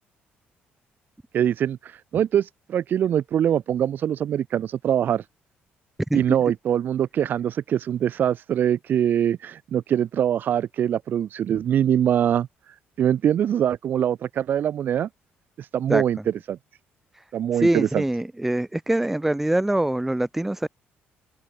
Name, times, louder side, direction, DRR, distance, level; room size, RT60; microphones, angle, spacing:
voice 1, 1.3-5.2 6.1-12.5 13.0-15.1 15.7-16.2 16.5-16.6 17.3-18.0, right 10 dB, 50° right, 2.6 m, -23 dB
voice 2, 17.5-20.7, right 1 dB, 5° right, 3.7 m, -24 dB
open air
cardioid pair, 150°, 4 cm